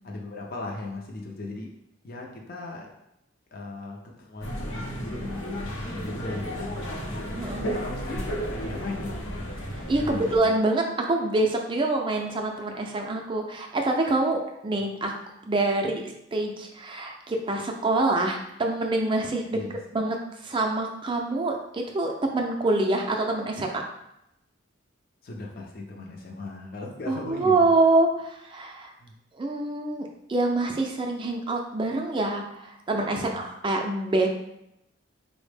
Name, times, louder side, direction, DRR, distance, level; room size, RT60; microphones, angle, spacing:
voice 1, 0.0-1.7 2.0-2.9 3.5-6.8 7.5-9.2 10.0-10.5 19.5-19.8 25.2-27.6 29.0-29.1 33.2-33.4, left 2 dB, 45° left, 0 dB, 0.4 m, -38 dB
sound 1, 4.4-10.4, equal, 85° left, 0.7 m, -33 dB
voice 2, 7.3-7.6 9.9-15.1 15.5-19.6 19.9-20.2 20.4-23.8 27.1-28.9 29.4-34.3, right 2 dB, 25° right, 2 dB, 0.3 m, -26 dB
4.1 x 2.1 x 3.2 m, 0.84 s
head